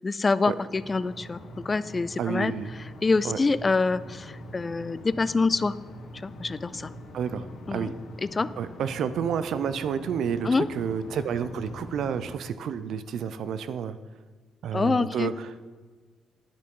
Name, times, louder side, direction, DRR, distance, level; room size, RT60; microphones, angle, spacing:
voice 1, 0.0-1.4 1.6-2.5 3.0-5.8 6.2-6.9 7.7-7.9 8.3-8.5 10.4-10.7 14.7-15.3, left 3 dB, 30° left, 17 dB, 0.4 m, -25 dB
sound 1, 0.7-12.3, equal, 65° left, 2.6 m, -43 dB
voice 2, 2.2-2.7 3.2-3.4 7.1-7.5 7.7-7.9 8.6-14.0 14.6-15.5, right 7 dB, 70° right, 13 dB, 0.6 m, -30 dB
10.0 x 9.8 x 3.8 m, 1.4 s
cardioid pair, 90°, 0 cm